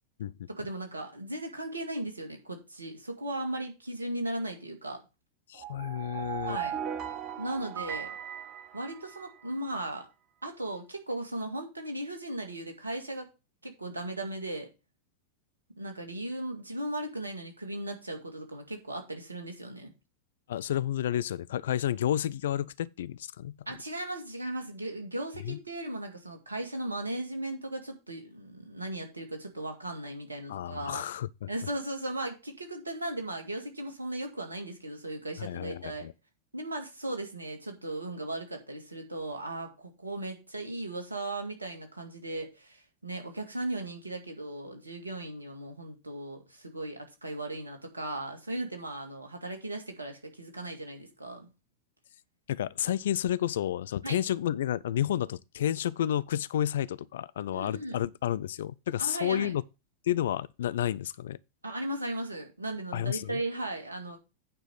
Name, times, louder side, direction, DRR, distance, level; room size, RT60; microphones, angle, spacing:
voice 1, 0.5-5.0 6.5-6.8 7.4-8.1 8.7-10.1 10.4-13.3 13.6-14.7 15.8-19.9 23.7-31.0 31.5-36.1 36.5-51.5 54.0-54.2 57.5-58.0 59.0-59.5 61.6-64.2, right 1 dB, 80° right, 2.0 m, -37 dB
voice 2, 5.5-6.6 20.5-23.5 25.4-25.6 30.5-31.5 35.4-36.1 52.5-59.6 60.0-61.4 62.9-63.4, left 11 dB, 60° left, 0.3 m, -31 dB
sound 1, 5.5-9.5, right 9 dB, 35° right, 1.5 m, -38 dB
8.9 x 5.0 x 5.6 m
figure-of-eight pair, 90°, 0 cm